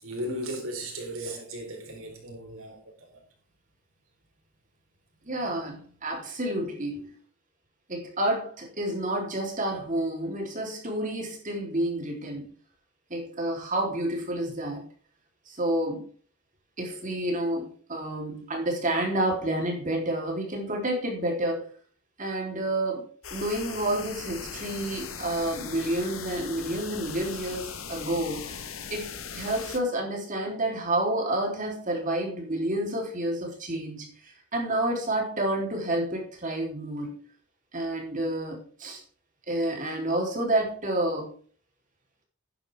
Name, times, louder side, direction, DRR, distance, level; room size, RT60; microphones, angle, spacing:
voice 1, 0.0-3.2, right 1 dB, 70° right, 4.2 m, -36 dB
voice 2, 5.2-7.2 7.9-12.5 13.1-14.8 15.5-16.1 16.8-21.7 22.2-37.3 37.7-39.0 39.5-41.3, right 1 dB, 40° right, 3.5 m, -29 dB
sound 1, 23.2-29.8, left 6 dB, 70° left, 1.4 m, -39 dB
11.5 x 9.7 x 3.6 m
head